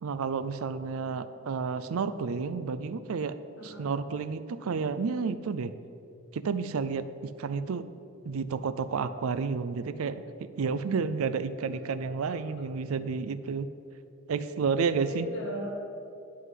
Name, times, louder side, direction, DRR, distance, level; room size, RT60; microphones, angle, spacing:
voice 1, 0.0-3.4 3.6-5.7 6.3-7.9 8.2-13.7 14.3-15.3, right 5 dB, 85° right, 13 dB, 0.4 m, -31 dB
voice 2, 12.2-12.6 15.0-15.7, left 1 dB, 60° left, -3 dB, 2.1 m, -39 dB
11.0 x 3.9 x 7.4 m, 2.6 s
head